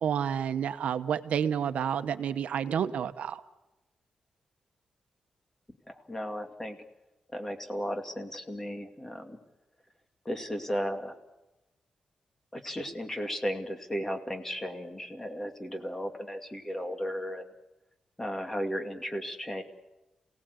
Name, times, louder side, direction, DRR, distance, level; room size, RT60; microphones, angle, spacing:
voice 1, 0.0-3.4, right 8 dB, 85° right, 10 dB, 1.0 m, -30 dB
voice 2, 5.9-6.8 7.3-9.4 10.2-11.2 12.5-17.5 18.2-19.6, equal, 15° left, 5 dB, 2.4 m, -35 dB
27.5 x 18.0 x 8.2 m, 1.0 s
wide cardioid pair, 120°, 2 cm